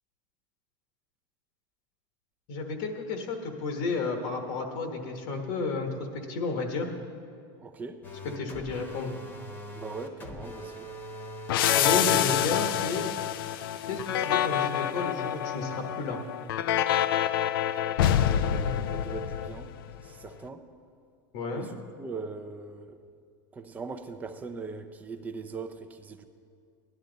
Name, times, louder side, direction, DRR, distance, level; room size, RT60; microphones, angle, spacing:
voice 1, 2.5-6.9 8.4-9.1 11.8-13.0 13.9-16.2 21.3-21.7, left 3 dB, 60° left, 4 dB, 1.3 m, -32 dB
voice 2, 7.6-8.0 9.7-10.9 18.4-19.7 20.0-20.6 21.5-23.0 23.5-26.3, right 4 dB, 15° right, 7 dB, 0.6 m, -40 dB
sound 1, 8.0-11.8, equal, 15° left, 1.1 m, -42 dB
sound 2, 11.5-20.0, left 10 dB, 85° left, 0.5 m, -27 dB
17.5 x 11.5 x 3.9 m, 2.4 s
supercardioid pair, 160°, 12 cm